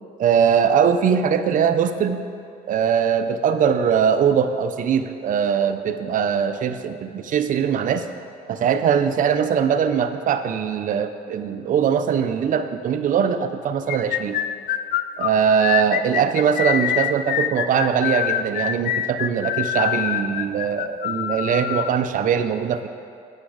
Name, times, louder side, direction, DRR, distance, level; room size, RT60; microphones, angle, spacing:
voice 1, 0.2-2.3 2.7-8.0 8.5-14.4 15.2-22.9, right 7 dB, 50° right, 9 dB, 0.6 m, -21 dB
sound 1, 13.9-21.9, left 11 dB, 65° left, 0.4 m, -25 dB
8.9 x 8.4 x 4.9 m, 2.4 s
cardioid pair, 110°, 17 cm